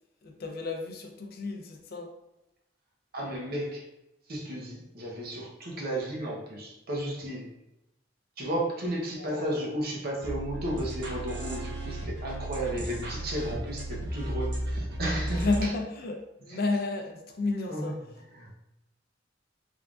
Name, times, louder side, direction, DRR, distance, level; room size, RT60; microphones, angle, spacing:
voice 1, 0.2-2.1 9.2-9.7 15.3-18.0, left 3 dB, 55° left, 3 dB, 0.6 m, -32 dB
voice 2, 3.1-3.9 4.3-7.5 8.4-15.7 16.5-16.6 17.7-17.9 18.3-18.5, right 1 dB, 55° right, -2 dB, 0.9 m, -33 dB
sound 1, 10.2-15.6, right 1 dB, 80° right, 1.0 m, -34 dB
3.5 x 3.5 x 2.4 m, 0.90 s
head